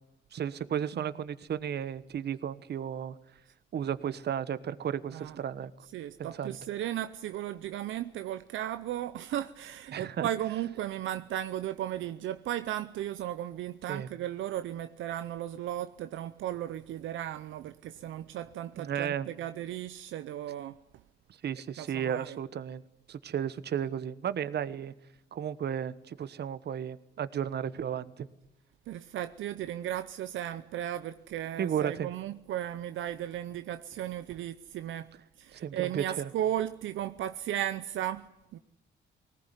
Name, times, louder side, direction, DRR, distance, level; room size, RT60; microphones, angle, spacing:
voice 1, 0.3-3.2 3.7-5.7 6.2-6.6 9.9-10.3 13.9-14.1 18.8-19.3 21.4-22.8 23.1-24.9 25.3-28.3 31.6-32.1 35.5-36.3, right 9 dB, 55° right, 1.2 m, -34 dB
voice 2, 0.9-1.2 5.1-5.4 5.8-20.8 21.8-22.4 28.9-38.6, right 12 dB, 80° right, 0.7 m, -35 dB
20.0 x 18.0 x 9.9 m
cardioid pair, 90°, 20 cm